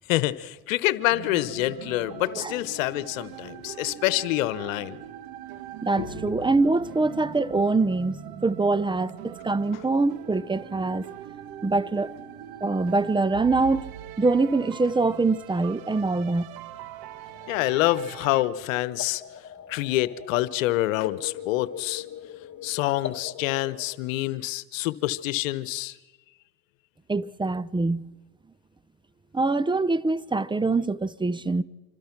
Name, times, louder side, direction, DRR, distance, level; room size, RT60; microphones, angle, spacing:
voice 1, 0.1-5.0 6.0-6.1 17.5-19.2 19.7-22.0 22.6-25.9, left 16 dB, 80° left, 1.1 m, -26 dB
sound 1, 1.1-18.4, right 11 dB, 65° right, 1.7 m, -42 dB
voice 2, 5.8-11.0 11.6-12.1 12.6-16.5 27.1-28.0 29.3-31.6, right 3 dB, 10° right, 0.9 m, -24 dB
sound 2, 17.3-24.0, left 10 dB, 45° left, 2.0 m, -41 dB
26.5 x 26.0 x 6.0 m
hypercardioid pair, 80°, 39 cm